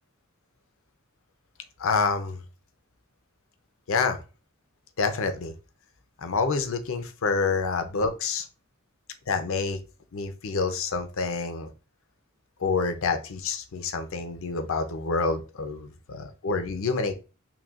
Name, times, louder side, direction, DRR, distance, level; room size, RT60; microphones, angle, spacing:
voice 1, 1.8-2.4 3.9-4.2 5.0-5.5 6.2-8.5 9.3-9.8 10.1-11.7 12.6-17.1, left 4 dB, 65° left, 8 dB, 0.6 m, -27 dB
5.9 x 2.3 x 2.4 m, 0.33 s
head